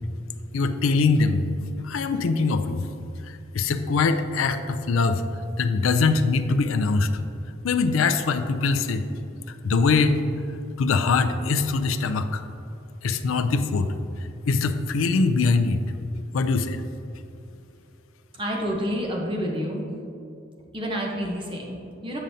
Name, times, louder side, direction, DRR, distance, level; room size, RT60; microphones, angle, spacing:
voice 1, 0.5-1.4 1.8-2.9 3.3-5.2 5.6-7.1 7.6-9.1 9.6-10.2 10.8-12.4 13.0-13.9 14.5-15.8 16.3-16.8, left 4 dB, 90° left, 9 dB, 0.4 m, -22 dB
voice 2, 18.3-19.9 20.7-22.2, equal, 25° right, -1 dB, 0.9 m, -29 dB
8.8 x 5.1 x 2.7 m, 2.7 s
head